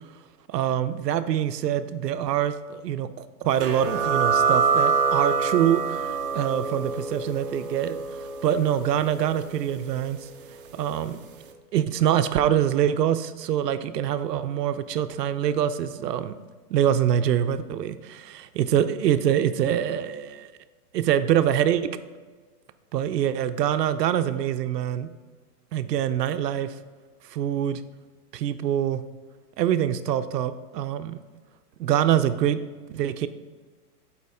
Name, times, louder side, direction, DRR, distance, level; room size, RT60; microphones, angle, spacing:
voice 1, 0.5-8.0 8.4-10.2 10.7-11.2 11.7-16.3 16.7-18.2 18.6-20.5 20.9-21.9 22.9-25.1 25.7-26.7 27.3-27.8 28.3-29.0 29.6-31.2 31.8-32.6 32.9-33.3, right 10 dB, 90° right, 11 dB, 0.6 m, -24 dB
Tanpura note Low C sharp, 3.6-10.8, right 5 dB, 35° right, 0.4 m, -26 dB
6.8 x 4.6 x 3.5 m, 1.4 s
hypercardioid pair, 150°, 48 cm